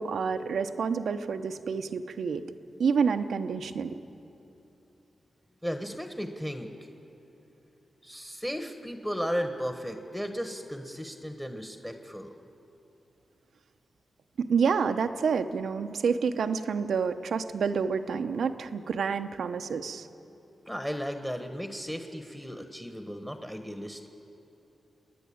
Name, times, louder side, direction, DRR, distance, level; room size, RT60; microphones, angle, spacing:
voice 1, 0.0-2.5 2.8-4.0 14.4-20.1, right 6 dB, 85° right, 9 dB, 0.8 m, -28 dB
voice 2, 5.6-6.7 8.0-12.3 20.7-24.1, equal, 5° left, 6 dB, 1.3 m, -35 dB
29.5 x 10.5 x 8.7 m, 3.0 s
wide cardioid pair, 85°, 0 cm